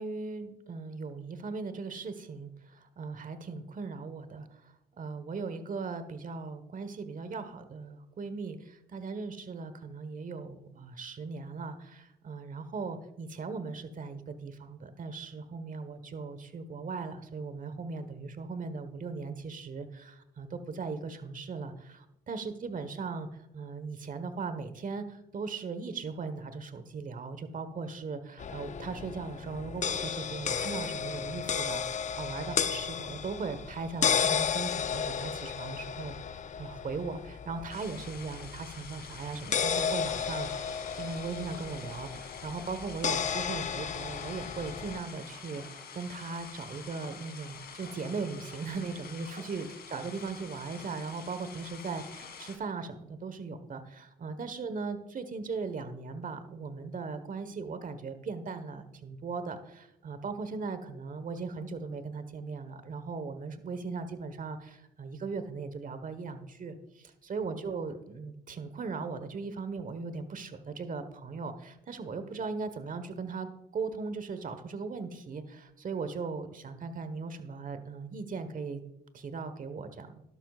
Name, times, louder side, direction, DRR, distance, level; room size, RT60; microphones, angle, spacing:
voice 1, 0.0-40.5 40.9-73.5 73.7-78.8 79.1-80.2, right 4 dB, 45° right, 10 dB, 1.3 m, -38 dB
sound 1, 28.4-45.0, left 7 dB, 40° left, 0.5 m, -33 dB
sound 2, 37.7-52.6, left 6 dB, 60° left, 2.1 m, -47 dB
12.5 x 11.5 x 2.5 m, 0.85 s
supercardioid pair, 65°, 18 cm